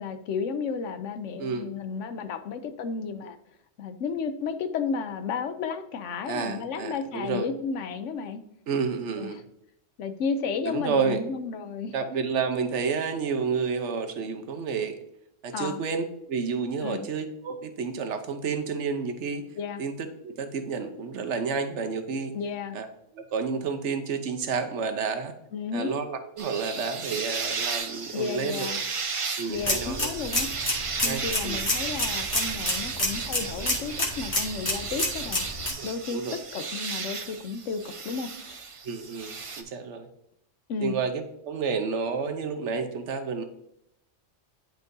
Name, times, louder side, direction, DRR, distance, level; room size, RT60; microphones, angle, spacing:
voice 1, 0.0-3.4 3.8-8.4 9.2-9.3 10.0-11.9 15.5-15.8 16.8-17.1 19.6-19.8 22.3-22.8 25.5-25.9 28.1-28.8 29.5-30.5 31.0-35.5 35.8-38.6 40.7-40.9, left 5 dB, 75° left, 10 dB, 1.0 m, -33 dB
voice 2, 1.4-1.7 6.2-7.5 8.7-9.4 10.6-11.2 11.9-15.0 15.4-19.4 19.8-22.4 22.7-22.9 23.1-25.3 25.7-28.7 29.4-30.1 31.0-31.6 35.7-36.4 38.8-40.1 40.8-43.4, right 5 dB, 70° right, 6 dB, 1.1 m, -30 dB
sound 1, 26.4-39.6, right 5 dB, 40° right, 0.5 m, -34 dB
sound 2, 29.5-35.7, left 1 dB, 25° left, 1.6 m, -29 dB
10.5 x 4.6 x 2.6 m, 0.80 s
omnidirectional pair, 1.3 m